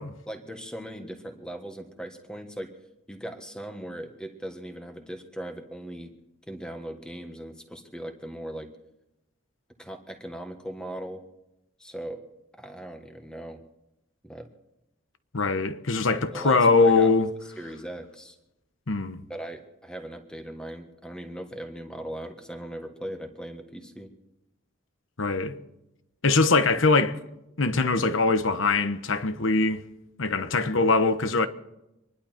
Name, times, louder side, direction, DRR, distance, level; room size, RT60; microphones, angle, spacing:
voice 1, 0.2-2.7 3.1-6.1 6.5-8.7 9.8-11.2 11.8-12.2 12.6-13.6 14.2-14.5 16.2-17.1 17.6-18.4 19.3-24.1, right 1 dB, 5° left, 1.5 m, -39 dB
voice 2, 15.3-17.3 18.9-19.2 25.2-25.6 26.2-27.2 27.6-29.8 30.2-31.5, left 3 dB, 70° left, 1.0 m, -22 dB
26.0 x 11.5 x 4.4 m
head